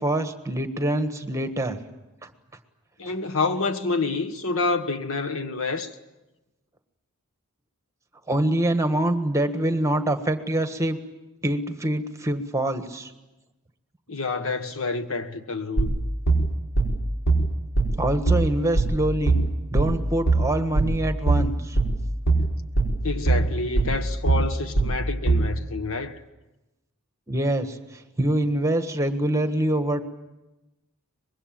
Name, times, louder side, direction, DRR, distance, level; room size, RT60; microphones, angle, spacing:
voice 1, 0.0-1.8 2.2-2.3 8.3-11.0 11.4-13.1 18.0-19.4 19.7-21.8 27.3-30.0, right 1 dB, 15° right, 1.5 m, -25 dB
voice 2, 3.0-5.9 14.1-15.9 23.0-26.2, left 3 dB, 65° left, 1.5 m, -28 dB
sound 1, 15.8-25.6, right 3 dB, 80° left, 5.3 m, -22 dB
24.5 x 21.5 x 8.9 m
head